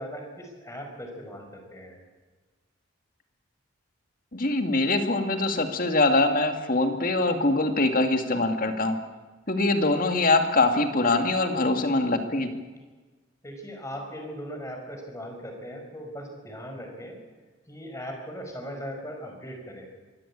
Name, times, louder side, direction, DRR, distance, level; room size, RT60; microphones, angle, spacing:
voice 1, 0.0-2.0 13.4-17.2 17.7-19.9, equal, 15° left, 3 dB, 5.4 m, -39 dB
voice 2, 4.3-9.0 9.5-12.5, left 2 dB, 45° left, 6 dB, 2.3 m, -23 dB
24.5 x 15.5 x 8.7 m, 1.3 s
head